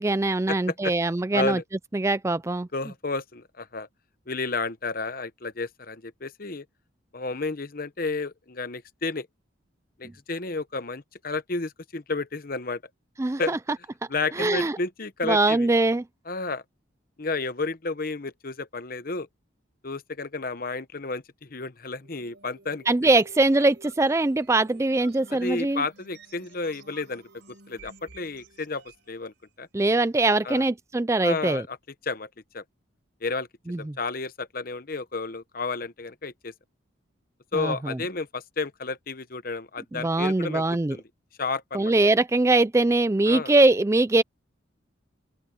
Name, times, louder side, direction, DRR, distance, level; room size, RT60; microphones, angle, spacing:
voice 1, 0.0-1.6 1.9-2.7 13.2-13.6 14.4-14.8 15.2-16.0 22.9-25.8 29.7-31.6 33.7-34.0 37.5-38.0 39.9-41.0 41.7-44.2, right 2 dB, 15° right, 0.3 m, -22 dB
voice 2, 1.3-1.6 2.7-3.9 4.3-6.6 7.1-9.3 10.0-12.8 13.4-13.6 14.1-15.7 16.3-16.6 17.2-19.3 19.8-23.1 25.3-27.2 27.7-29.7 30.4-30.6 31.2-31.8 32.0-32.3 32.5-32.6 33.2-33.5 33.8-36.5 37.5-40.6 40.9-41.0 41.4-41.9 43.3-43.5, left 3 dB, 45° left, 1.0 m, -31 dB
sound 1, 22.0-29.1, right 4 dB, 65° right, 4.6 m, -52 dB
open air
head